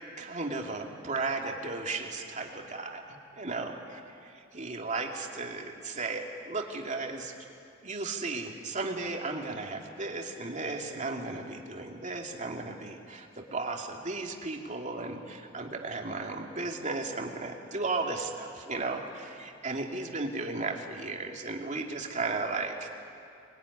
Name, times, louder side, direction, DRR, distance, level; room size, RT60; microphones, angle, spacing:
voice 1, 0.2-3.0 3.3-3.7 4.3-7.3 7.8-22.9, right 3 dB, 40° right, 1 dB, 2.7 m, -35 dB
25.5 x 21.5 x 9.9 m, 2.6 s
head